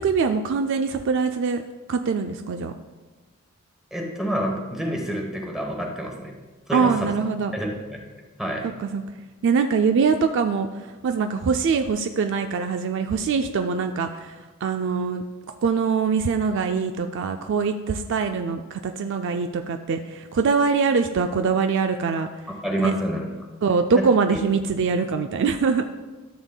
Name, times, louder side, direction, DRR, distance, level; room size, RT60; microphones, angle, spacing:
voice 1, 0.0-1.6 1.9-2.7 6.7-7.5 8.8-9.0 9.4-10.7 11.0-15.2 15.6-22.3 22.8-22.9 23.6-25.8, right 5 dB, 60° right, 7 dB, 0.3 m, -23 dB
voice 2, 3.9-6.3 6.7-7.1 7.5-8.0 8.4-8.7 22.5-23.3 23.9-24.4, right 1 dB, ahead, 0 dB, 1.0 m, -28 dB
13.5 x 7.1 x 2.2 m, 1.3 s
head